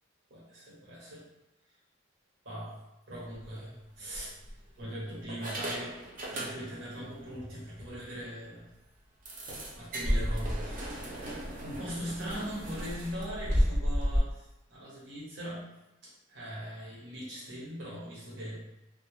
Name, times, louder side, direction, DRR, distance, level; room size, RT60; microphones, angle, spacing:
voice 1, 0.3-1.2 2.4-2.8 3.1-4.3 4.8-5.9 6.3-8.7 9.8-15.7 16.0-18.7, equal, 85° right, -7 dB, 1.1 m, -41 dB
sound 1, 3.2-3.5 4.1-4.8 5.3-6.9 7.3-7.4 7.8-7.9 8.2-8.3 9.3-14.2, equal, 45° right, 0.5 m, -33 dB
2.2 x 2.1 x 3.1 m, 0.93 s
head